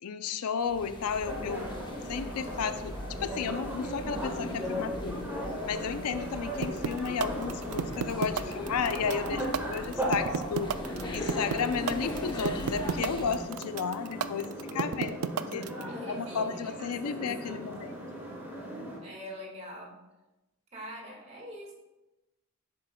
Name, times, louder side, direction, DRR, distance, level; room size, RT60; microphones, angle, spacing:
voice 1, 0.0-1.7 2.1-5.2 5.6-10.7 11.1-15.2 15.5-15.7 16.1-17.9, left 6 dB, 80° left, 11 dB, 0.4 m, -33 dB
sound 1, 0.6-13.6, left 1 dB, 20° left, 0.7 m, -41 dB
sound 2, 1.2-19.0, equal, 10° right, 1.6 m, -37 dB
sound 3, 6.6-15.8, right 7 dB, 70° right, 0.4 m, -31 dB
voice 2, 15.9-17.9 19.0-20.0 20.7-21.7, equal, 30° right, -1 dB, 1.8 m, -44 dB
9.9 x 7.5 x 2.3 m, 1.0 s
head